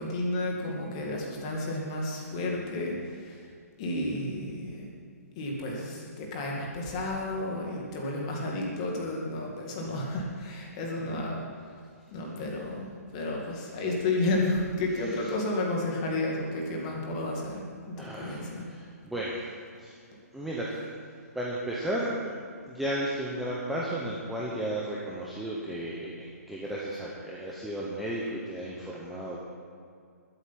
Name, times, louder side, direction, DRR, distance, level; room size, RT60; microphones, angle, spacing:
voice 1, 0.0-3.5 3.8-4.9 5.4-11.7 12.1-18.6, left 2 dB, 20° left, -1 dB, 2.1 m, -32 dB
voice 2, 18.0-20.0 20.3-20.8 21.3-22.4 22.7-29.4, right 1 dB, ahead, -6 dB, 0.7 m, -34 dB
21.0 x 8.1 x 5.8 m, 2.3 s
hypercardioid pair, 175°, 9 cm